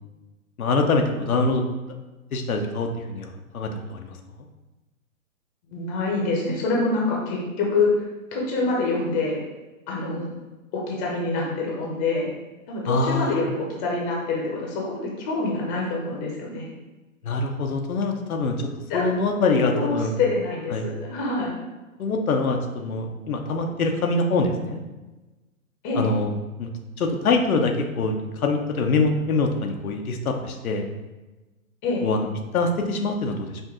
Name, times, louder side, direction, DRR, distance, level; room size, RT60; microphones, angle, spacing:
voice 1, 0.6-1.6 2.3-4.2 12.9-13.4 17.2-20.1 20.7-20.9 22.0-24.8 25.9-26.3 26.6-26.7 27.0-30.9 32.0-32.3 32.5-33.6, left 3 dB, 90° left, 4 dB, 0.8 m, -24 dB
voice 2, 5.7-7.9 8.3-9.4 9.9-10.3 10.7-12.3 12.7-16.7 18.9-19.0 19.7-21.5 25.8-26.1 31.8-32.1, left 3 dB, 20° left, -2 dB, 0.8 m, -26 dB
5.2 x 2.6 x 3.7 m, 1.1 s
hypercardioid pair, 145°, 42 cm